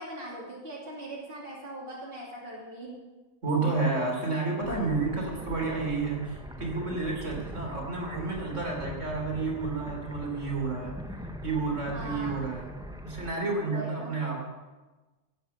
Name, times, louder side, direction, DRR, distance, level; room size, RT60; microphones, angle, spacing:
voice 1, 0.0-3.0 11.9-12.5 13.7-14.1, right 1 dB, 40° right, -5 dB, 3.2 m, -40 dB
voice 2, 3.4-11.0 11.4-12.7 13.0-14.5, right 3 dB, 60° right, 0 dB, 3.9 m, -30 dB
sound 1, 4.6-13.3, equal, 5° right, 0.8 m, -41 dB
17.0 x 9.5 x 6.9 m, 1.2 s
omnidirectional pair, 1.5 m